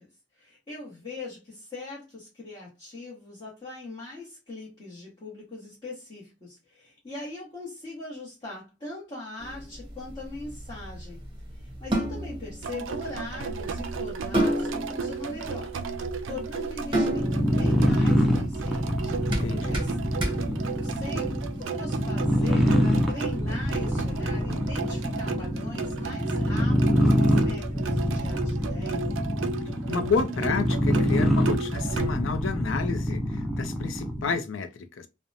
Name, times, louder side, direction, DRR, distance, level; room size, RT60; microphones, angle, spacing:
voice 1, 0.3-11.2 11.6-15.8 16.3-19.2 19.7-19.9 20.6-29.1, left 2 dB, 25° left, 1.0 m, -40 dB
sound 1, 9.4-21.5, right 1 dB, 25° right, 0.8 m, -32 dB
sound 2, 12.6-32.1, right 5 dB, 80° right, 0.4 m, -34 dB
sound 3, 17.1-34.4, equal, ahead, 0.4 m, -25 dB
voice 2, 19.3-19.8 29.9-35.1, left 5 dB, 80° left, 0.4 m, -30 dB
2.8 x 2.1 x 2.4 m
head